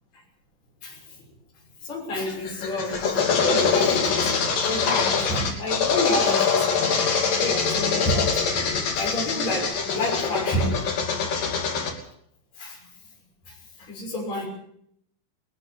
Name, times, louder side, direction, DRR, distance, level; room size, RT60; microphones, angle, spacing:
voice 1, 0.8-1.2 1.8-6.9 7.4-8.4 9.0-10.8 12.6-12.8 13.5-14.5, left 1 dB, 55° left, -3 dB, 7.6 m, -29 dB
sound 1, 2.3-11.9, left 5 dB, 85° left, 4.6 m, -24 dB
21.0 x 14.5 x 8.8 m, 0.71 s
omnidirectional pair, 3.8 m